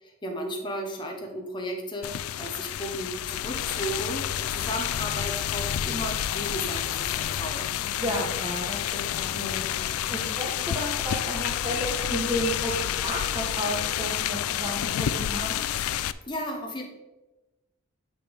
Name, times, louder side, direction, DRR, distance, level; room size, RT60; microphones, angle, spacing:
voice 1, 0.0-7.7 16.3-16.9, equal, 20° left, 1 dB, 0.9 m, -34 dB
sound 1, 2.0-16.1, left 11 dB, 85° left, 0.3 m, -29 dB
voice 2, 8.0-15.6, equal, 20° right, -5 dB, 1.1 m, -32 dB
9.2 x 6.0 x 3.5 m, 1.0 s
head